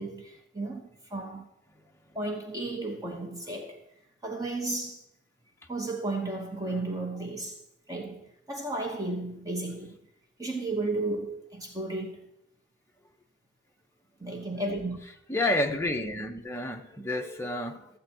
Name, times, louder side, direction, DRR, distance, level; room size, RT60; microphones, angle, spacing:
voice 1, 0.0-1.5 2.1-3.8 4.2-5.0 5.7-7.6 7.9-10.0 10.4-12.3 14.2-15.0, right 2 dB, 20° right, 0.9 m, -34 dB
voice 2, 15.3-17.9, left 1 dB, 15° left, 0.7 m, -30 dB
13.5 x 7.8 x 4.3 m
head